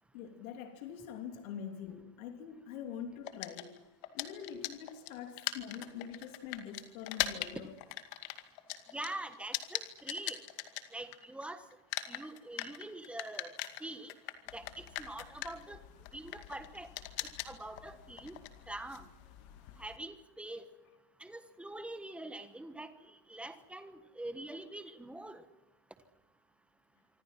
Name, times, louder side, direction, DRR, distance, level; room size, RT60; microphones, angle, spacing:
voice 1, 0.1-3.8 4.1-7.7, left 8 dB, 60° left, 5 dB, 3.2 m, -44 dB
sound 1, 3.3-11.4 11.7-20.0, left 15 dB, 45° left, 2.3 m, -41 dB
voice 2, 8.9-10.4 10.9-11.6 12.1-14.1 14.5-15.8 16.1-16.9 17.2-18.4 18.7-19.1 19.8-20.7 21.2-25.4, right 1 dB, ahead, 9 dB, 1.3 m, -44 dB
27.0 x 25.5 x 5.9 m, 0.97 s
supercardioid pair, 170°, 46 cm